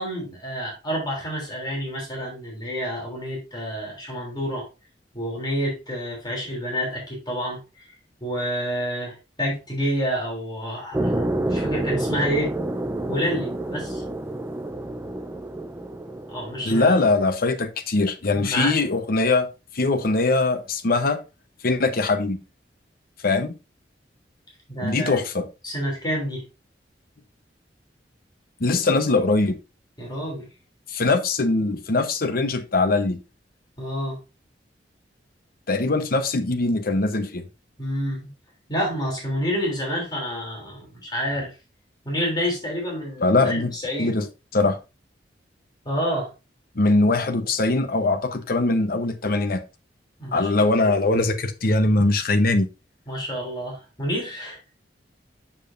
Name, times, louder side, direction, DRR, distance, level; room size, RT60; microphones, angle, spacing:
voice 1, 0.0-4.7 5.1-7.9 8.2-12.5 13.1-14.0 16.3-16.9 18.3-18.8 24.7-25.2 25.6-26.4 30.0-30.5 33.8-34.2 37.8-38.3 38.7-41.5 42.0-44.1 45.8-46.3 50.2-50.5 53.1-54.6, equal, 25° left, 3.0 m, -28 dB
sound 1, 10.9-17.2, right 1 dB, 15° right, 0.5 m, -29 dB
voice 2, 16.6-19.5 19.7-21.2 21.6-22.4 23.2-23.5 24.8-25.5 28.6-29.6 30.9-33.2 35.7-37.5 43.2-43.7 44.0-44.3 44.5-44.8 46.7-49.6 50.3-52.7, left 2 dB, 55° left, 0.9 m, -21 dB
7.4 x 6.9 x 2.6 m
head